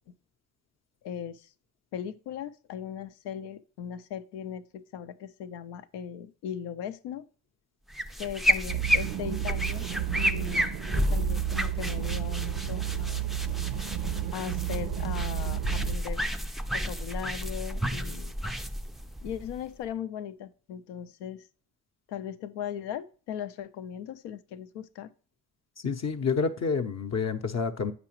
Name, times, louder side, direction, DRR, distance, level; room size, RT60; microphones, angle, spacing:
voice 1, 1.0-1.5 1.9-7.3 8.2-9.9 10.1-13.3 14.3-16.3 16.7-18.3 19.2-21.5 22.1-25.1, left 9 dB, 85° left, 0.6 m, -38 dB
sound 1, 7.9-19.9, equal, ahead, 0.3 m, -31 dB
sound 2, 8.7-16.0, right 15 dB, 65° right, 0.5 m, -32 dB
voice 2, 25.8-27.9, left 5 dB, 40° left, 0.7 m, -28 dB
8.2 x 5.0 x 3.0 m
supercardioid pair, 55°, 41 cm